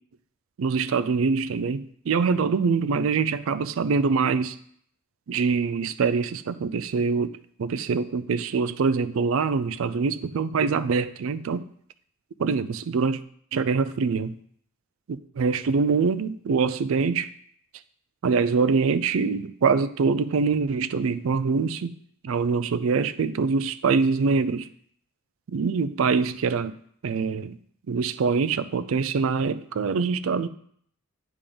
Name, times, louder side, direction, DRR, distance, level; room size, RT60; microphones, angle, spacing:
voice 1, 0.6-4.6 5.3-7.3 7.6-11.7 12.4-13.2 13.5-14.4 15.1-17.3 18.2-21.9 22.2-24.7 25.5-26.7 27.0-27.6 27.9-30.5, right 5 dB, 70° right, 0.4 m, -24 dB
8.5 x 3.6 x 5.2 m
head